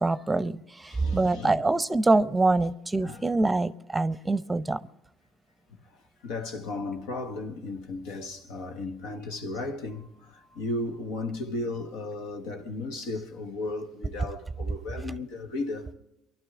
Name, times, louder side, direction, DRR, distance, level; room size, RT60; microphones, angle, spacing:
voice 1, 0.0-4.8, right 2 dB, 15° right, 0.7 m, -25 dB
voice 2, 0.9-1.7 2.6-2.7 3.0-3.3 5.7-15.9, left 2 dB, 80° left, 1.4 m, -35 dB
24.0 x 11.5 x 3.6 m
supercardioid pair, 70°, 0 cm